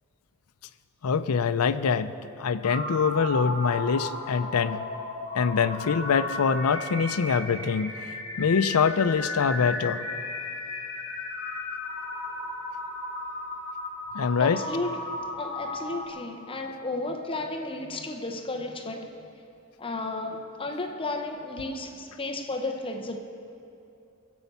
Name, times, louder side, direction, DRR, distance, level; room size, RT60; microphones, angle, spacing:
voice 1, 1.0-2.1 2.4-4.8 5.3-7.9 8.4-10.0 14.1-14.6, left 6 dB, 80° left, 0.5 m, -24 dB
sound 1, 2.6-16.1, left 2 dB, 50° left, 2.6 m, -35 dB
voice 2, 14.4-19.1 19.8-23.2, left 2 dB, 25° left, 0.8 m, -33 dB
21.5 x 8.2 x 5.5 m
head